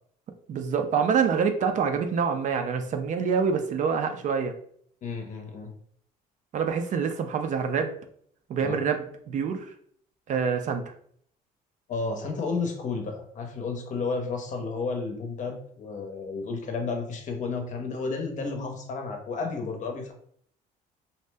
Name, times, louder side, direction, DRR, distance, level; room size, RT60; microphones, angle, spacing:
voice 1, 0.5-4.5 6.5-7.9 8.5-9.7 10.3-10.8, right 6 dB, 50° right, 6 dB, 0.4 m, -26 dB
voice 2, 5.0-5.7 8.6-8.8 11.9-20.1, left 4 dB, 45° left, 3 dB, 0.7 m, -32 dB
2.7 x 2.0 x 3.3 m, 0.63 s
cardioid pair, 110°, 17 cm